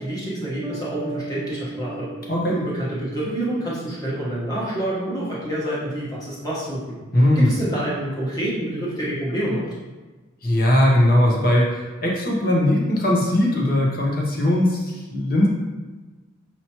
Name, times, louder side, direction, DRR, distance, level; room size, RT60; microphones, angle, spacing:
voice 1, 0.0-2.1 2.5-7.0 7.3-9.6, right 1 dB, 20° left, -8 dB, 1.2 m, -27 dB
Bass guitar, 0.6-4.2, right 2 dB, 15° right, 0.4 m, -37 dB
voice 2, 7.1-7.5 10.4-15.5, left 1 dB, 45° left, -2 dB, 0.9 m, -19 dB
5.6 x 3.0 x 2.9 m, 1.2 s
head